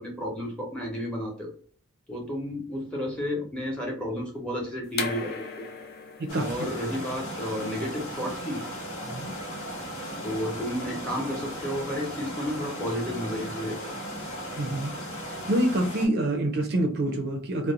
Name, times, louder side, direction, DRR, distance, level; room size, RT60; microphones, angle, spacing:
voice 1, 0.0-1.5 2.1-5.7 6.3-8.6 10.2-13.9, equal, 5° left, -1 dB, 0.8 m, -32 dB
sound 1, 4.9-10.5, left 4 dB, 45° left, 0.4 m, -39 dB
voice 2, 6.2-6.7 9.1-9.3 14.6-14.9 15.5-17.7, right 1 dB, 45° right, 3 dB, 0.4 m, -26 dB
sound 2, 6.3-16.1, equal, 65° left, 1.0 m, -36 dB
2.4 x 2.0 x 2.9 m, 0.43 s
head